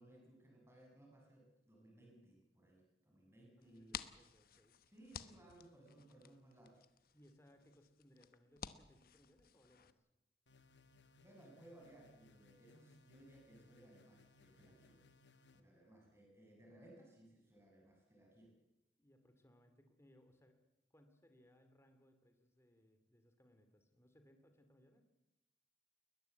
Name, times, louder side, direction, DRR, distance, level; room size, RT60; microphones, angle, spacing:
voice 1, 0.0-4.1 4.8-6.8 11.2-15.0 15.5-18.5, right 1 dB, 15° right, -1 dB, 6.7 m, -62 dB
sound 1, 3.6-9.9, left 7 dB, 55° left, 1.1 m, -54 dB
voice 2, 3.6-4.8 7.1-10.1 19.0-20.6 20.9-25.0, equal, 15° left, 6 dB, 2.4 m, -68 dB
sound 2, 10.5-15.6, left 4 dB, 85° left, 1.9 m, -68 dB
21.0 x 20.5 x 8.2 m, 0.93 s
head